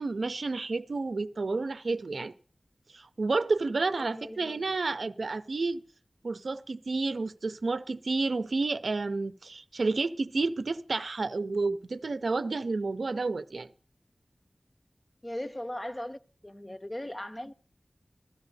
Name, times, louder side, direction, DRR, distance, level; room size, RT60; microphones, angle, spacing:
voice 1, 0.0-2.3 2.9-5.8 6.2-13.7, right 3 dB, 80° right, 0.5 m, -30 dB
voice 2, 4.0-4.6 15.2-17.5, left 1 dB, 25° left, 0.6 m, -39 dB
16.5 x 13.0 x 2.7 m
wide cardioid pair, 65°, 0 cm